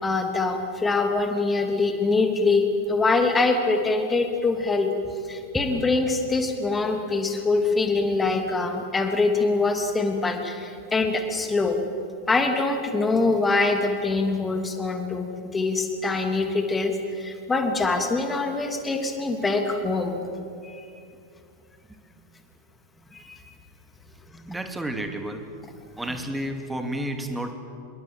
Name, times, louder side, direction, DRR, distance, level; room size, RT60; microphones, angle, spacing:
voice 1, 0.0-4.9 5.3-11.8 12.3-20.2 20.6-20.8 23.1-23.2, left 3 dB, 15° left, 5 dB, 3.0 m, -24 dB
voice 2, 24.5-25.4 26.0-27.5, right 1 dB, 5° right, 6 dB, 2.5 m, -31 dB
26.5 x 22.0 x 7.7 m, 2.5 s
figure-of-eight pair, 90°, 0 cm